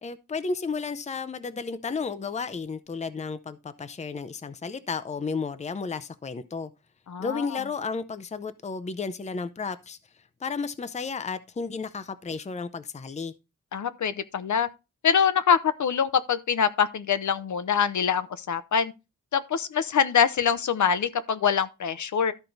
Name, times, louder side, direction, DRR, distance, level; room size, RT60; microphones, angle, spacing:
voice 1, 0.0-6.7 7.2-10.0 10.4-13.3, left 4 dB, 20° left, 0.5 m, -33 dB
voice 2, 7.1-7.6 13.7-14.7 15.0-18.9 19.3-22.3, left 7 dB, 70° left, 0.7 m, -24 dB
12.5 x 4.5 x 3.9 m
wide cardioid pair, 155°, 31 cm